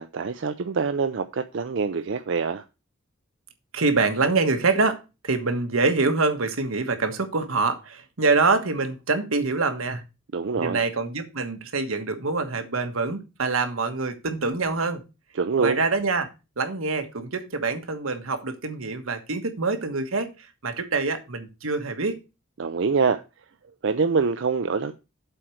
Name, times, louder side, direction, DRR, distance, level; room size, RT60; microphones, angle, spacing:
voice 1, 0.0-2.6 10.3-10.8 15.4-15.8 22.6-23.2 23.8-24.9, right 5 dB, 60° right, 0.5 m, -25 dB
voice 2, 3.7-10.0 10.6-15.0 15.6-16.3 16.6-22.2, right 3 dB, 80° right, 1.4 m, -25 dB
7.7 x 4.5 x 6.3 m
head